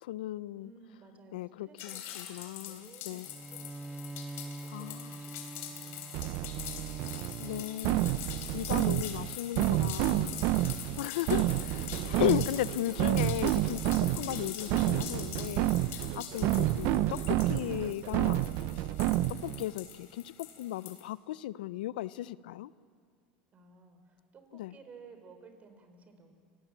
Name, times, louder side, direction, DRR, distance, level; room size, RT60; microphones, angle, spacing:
voice 1, 0.0-0.7 1.3-3.3 4.7-5.2 7.4-10.4 10.7-18.5 18.8-18.9 19.3-22.7 24.5-24.8, left 14 dB, 85° left, 18 dB, 0.6 m, -36 dB
voice 2, 0.6-2.2 2.4-5.3 5.6-6.9 16.2-16.7 23.5-26.3, right 4 dB, 30° right, 7 dB, 3.8 m, -56 dB
sound 1, 1.8-21.0, left 10 dB, 55° left, 3.8 m, -44 dB
Bowed string instrument, 3.2-8.7, right 2 dB, 10° right, 0.6 m, -46 dB
sound 2, 6.1-19.6, right 15 dB, 60° right, 0.6 m, -30 dB
29.5 x 18.5 x 7.3 m, 2.1 s
supercardioid pair, 115°, 5 cm